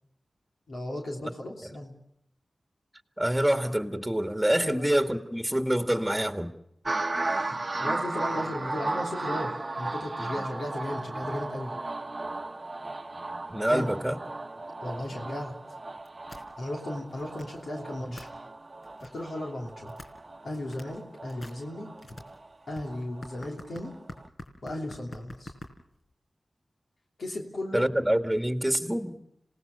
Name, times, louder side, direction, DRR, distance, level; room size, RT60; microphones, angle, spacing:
voice 1, 0.7-1.9 4.6-4.8 7.8-11.7 13.7-13.9 14.8-15.5 16.6-18.3 19.0-19.9 20.4-21.9 22.7-23.9 24.6-25.5 27.2-27.9, left 1 dB, 80° left, -1 dB, 3.1 m, -35 dB
voice 2, 3.2-6.5 13.5-14.2 18.1-18.2 27.7-29.2, right 1 dB, 5° right, 6 dB, 2.0 m, -26 dB
sound 1, 6.9-23.5 23.8-24.3, right 2 dB, 40° right, 0.9 m, -35 dB
sound 2, 16.0-16.5 16.9-17.6 17.9-18.3 18.8-19.3 19.7-20.2 20.5-21.0 21.3-26.1, left 2 dB, 60° left, 4.1 m, -45 dB
27.0 x 18.5 x 6.7 m, 0.76 s
cardioid pair, 45°, 0 cm